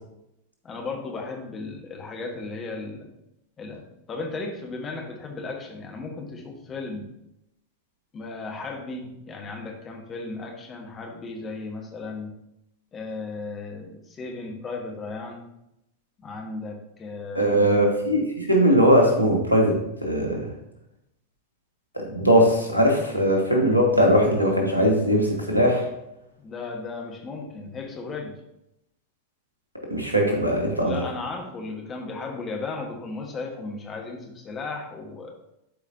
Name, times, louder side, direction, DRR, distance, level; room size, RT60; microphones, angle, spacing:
voice 1, 0.6-3.1 3.6-3.8 4.1-7.0 8.1-12.3 12.9-15.5 16.2-17.7 26.4-28.3 30.8-35.3, left 3 dB, 25° left, 2 dB, 1.4 m, -35 dB
voice 2, 17.3-20.5 21.9-25.9 29.9-31.0, equal, 90° right, 1 dB, 1.5 m, -20 dB
11.5 x 4.8 x 2.7 m, 0.84 s
figure-of-eight pair, 90°, 0 cm